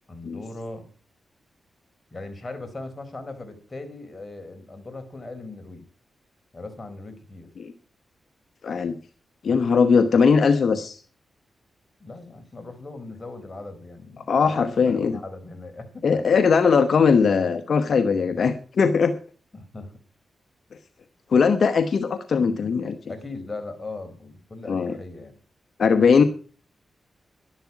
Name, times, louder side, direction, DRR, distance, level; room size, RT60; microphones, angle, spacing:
voice 1, 0.1-0.9 2.1-5.9 6.5-7.5 12.0-16.4 19.5-19.9 23.1-25.4, left 2 dB, 30° left, 6 dB, 4.3 m, -39 dB
voice 2, 8.6-8.9 9.4-11.0 14.3-15.1 16.0-19.2 21.3-23.0 24.7-25.0 25.8-26.2, left 5 dB, 65° left, 9 dB, 1.0 m, -20 dB
12.0 x 11.5 x 5.9 m, 0.39 s
cardioid pair, 60°, 0 cm